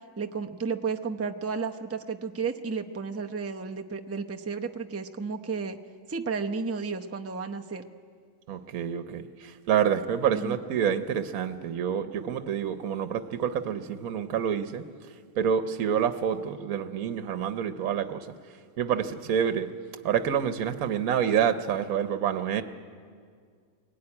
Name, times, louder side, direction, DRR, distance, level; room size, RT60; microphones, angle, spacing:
voice 1, 0.2-5.8 6.1-7.8 10.3-10.6, right 5 dB, 15° right, 4 dB, 0.5 m, -32 dB
voice 2, 8.5-14.8 15.4-18.3 18.8-19.7 20.0-22.6, right 8 dB, 75° right, 10 dB, 1.3 m, -27 dB
22.5 x 17.5 x 9.7 m, 2.1 s
omnidirectional pair, 1.5 m